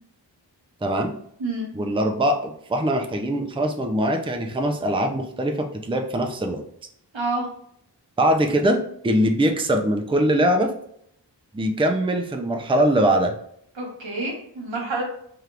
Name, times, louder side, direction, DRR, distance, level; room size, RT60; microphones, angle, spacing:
voice 1, 0.8-1.1 1.7-6.6 8.2-10.7 11.5-13.3, right 1 dB, 10° right, 4 dB, 0.5 m, -22 dB
voice 2, 7.1-7.5 13.8-15.0, right 2 dB, 90° right, -3 dB, 1.5 m, -28 dB
4.4 x 3.3 x 2.5 m, 0.69 s
wide cardioid pair, 55°, 44 cm